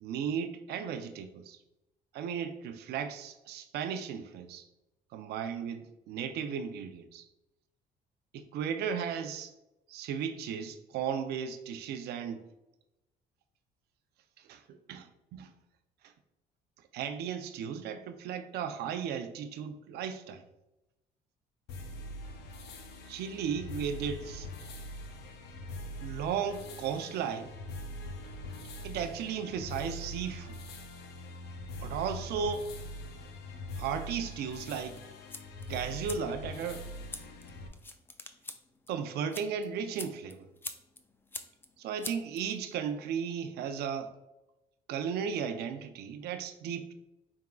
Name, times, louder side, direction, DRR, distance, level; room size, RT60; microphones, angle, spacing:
voice 1, 0.0-1.6 2.1-4.7 5.1-7.2 8.3-9.5 9.9-12.5 14.4-15.5 16.9-20.4 23.1-24.5 26.0-27.5 28.8-30.6 31.8-32.7 33.8-35.0 35.7-36.9 38.9-40.5 41.8-44.1 44.9-46.9, right 7 dB, 70° right, 0.5 m, -35 dB
sound 1, 21.7-37.7, left 1 dB, 70° left, 0.6 m, -43 dB
sound 2, 34.9-42.9, left 3 dB, 15° left, 0.3 m, -47 dB
4.8 x 3.5 x 2.3 m
cardioid pair, 110°, 17 cm